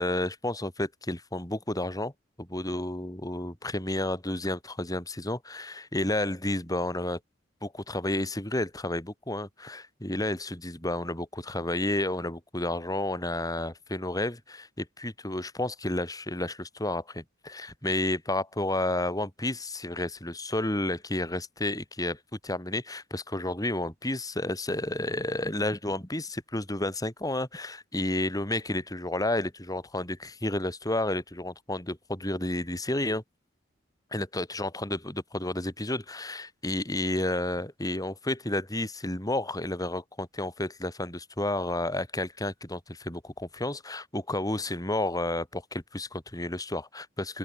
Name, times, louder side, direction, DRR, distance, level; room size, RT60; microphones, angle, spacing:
voice 1, 0.0-2.1 2.4-7.2 7.6-33.2 34.1-47.4, left 1 dB, 20° left, 3.6 m, -31 dB
open air
head